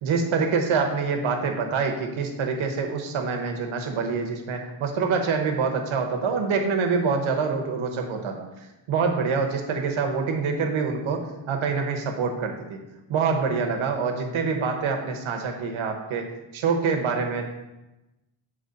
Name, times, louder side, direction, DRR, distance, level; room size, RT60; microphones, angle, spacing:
voice 1, 0.0-8.5 8.9-12.8 13.1-17.4, right 5 dB, 70° right, 3 dB, 1.0 m, -26 dB
7.7 x 3.1 x 3.9 m, 1.0 s
wide cardioid pair, 165°, 49 cm